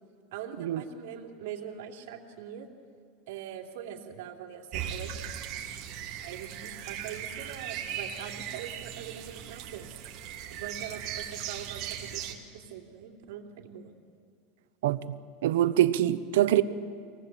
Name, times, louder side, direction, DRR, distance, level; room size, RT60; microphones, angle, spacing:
voice 1, 0.3-2.7 3.3-5.3 6.2-10.0 10.5-13.9, right 9 dB, 70° right, 3.0 m, -42 dB
sound 1, 4.7-12.3, right 9 dB, 40° right, 2.6 m, -38 dB
voice 2, 14.8-15.2 15.4-16.6, right 13 dB, 85° right, 0.9 m, -24 dB
26.0 x 19.5 x 7.6 m
supercardioid pair, 175°, 0 cm